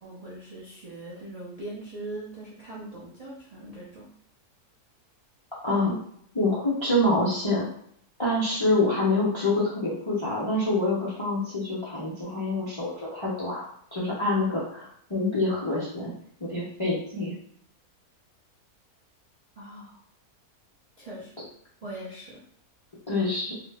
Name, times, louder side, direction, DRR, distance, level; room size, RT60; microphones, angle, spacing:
voice 1, 0.0-4.1 19.6-20.0 21.0-21.3 21.8-22.4, right 1 dB, 60° right, -7 dB, 0.3 m, -40 dB
voice 2, 5.6-6.0 6.3-7.7 8.2-16.1 16.5-17.3 23.1-23.5, left 2 dB, 50° left, -7 dB, 0.3 m, -26 dB
2.8 x 2.0 x 3.3 m, 0.66 s
omnidirectional pair, 1.7 m